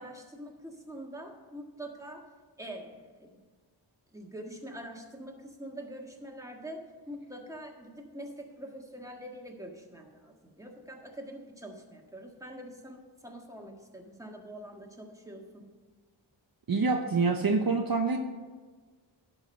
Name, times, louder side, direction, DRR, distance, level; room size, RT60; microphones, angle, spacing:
voice 1, 0.0-2.3 2.6-3.4 4.1-15.6, right 1 dB, 5° right, 1 dB, 1.6 m, -44 dB
voice 2, 16.7-18.2, right 4 dB, 50° right, 4 dB, 0.7 m, -26 dB
11.5 x 4.9 x 6.6 m, 1.4 s
wide cardioid pair, 50°, 46 cm